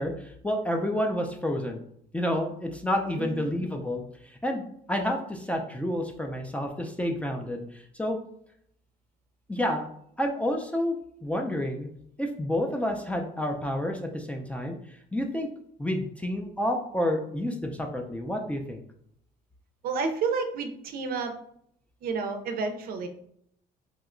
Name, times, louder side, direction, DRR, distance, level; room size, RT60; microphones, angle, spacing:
voice 1, 0.0-1.9 2.1-8.2 9.5-9.9 10.2-10.9 11.2-11.9 12.2-14.7 15.1-15.5 15.8-18.8, left 1 dB, 10° left, 2 dB, 0.4 m, -29 dB
voice 2, 3.2-3.5 19.8-21.4 22.0-23.1, right 4 dB, 60° right, 7 dB, 0.5 m, -30 dB
2.8 x 2.2 x 3.7 m, 0.69 s
cardioid pair, 110°, 17 cm